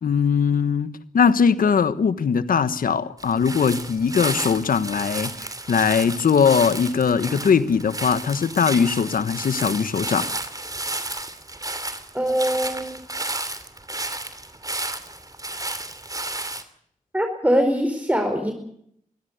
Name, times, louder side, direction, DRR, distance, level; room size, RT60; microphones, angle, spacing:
voice 1, 0.0-10.3, left 6 dB, 85° left, 1.3 m, -20 dB
sound 1, 3.2-16.6, right 2 dB, 25° right, 2.7 m, -32 dB
voice 2, 12.1-12.9 17.1-18.5, equal, 10° right, 4.7 m, -22 dB
24.0 x 16.5 x 8.1 m
cardioid pair, 55°, 14 cm